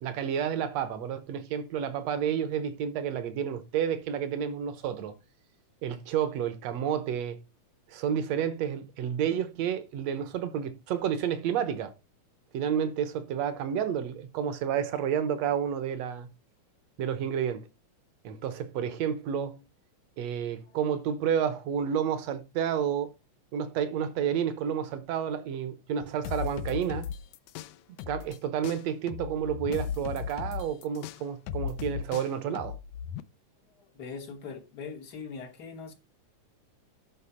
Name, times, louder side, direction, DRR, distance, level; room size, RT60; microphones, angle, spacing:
voice 1, 0.0-5.1 5.8-7.4 7.9-11.9 12.5-16.3 17.0-17.7 18.2-19.6 20.2-23.1 23.5-27.1 28.1-32.8, right 8 dB, 65° right, 1.9 m, -30 dB
sound 1, 26.2-28.4 28.6-33.2, left 8 dB, 80° left, 1.6 m, -36 dB
voice 2, 33.7-35.9, left 5 dB, 55° left, 1.1 m, -41 dB
11.5 x 4.6 x 4.3 m
omnidirectional pair, 3.6 m